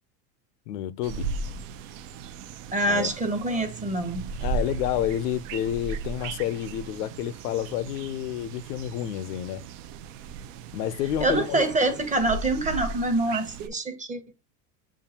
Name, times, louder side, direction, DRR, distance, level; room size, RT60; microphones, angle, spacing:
voice 1, 0.7-1.3 2.9-3.1 4.4-9.6 10.7-11.7, left 11 dB, 90° left, 0.6 m, -29 dB
sound 1, 1.0-13.7, right 4 dB, 60° right, 0.6 m, -36 dB
voice 2, 2.7-4.3 11.2-14.2, right 2 dB, 15° right, 0.9 m, -25 dB
7.1 x 2.4 x 2.8 m
supercardioid pair, 120°, 46 cm